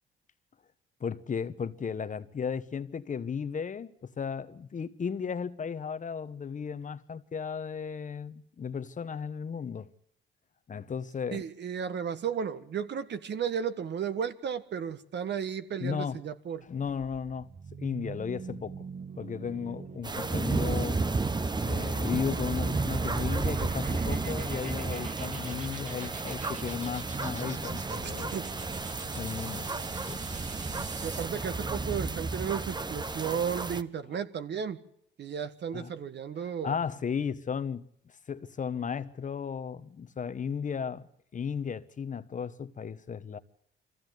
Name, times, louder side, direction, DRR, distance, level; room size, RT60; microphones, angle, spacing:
voice 1, 1.0-9.9 10.7-11.4 15.8-16.2 16.6-17.5 17.8-18.8 19.2-21.0 21.6-28.4 29.1-30.6 35.7-35.9 36.4-37.9 38.3-43.4, left 6 dB, 40° left, 1.1 m, -35 dB
voice 2, 11.3-16.6 28.3-28.4 31.0-34.8 35.2-36.7, right 7 dB, 60° right, 1.6 m, -34 dB
sound 1, 16.7-31.4, right 5 dB, 40° right, 1.3 m, -45 dB
sound 2, 20.0-33.8, right 3 dB, 20° right, 1.0 m, -32 dB
23.5 x 15.0 x 9.3 m
cardioid pair, 90°, 20 cm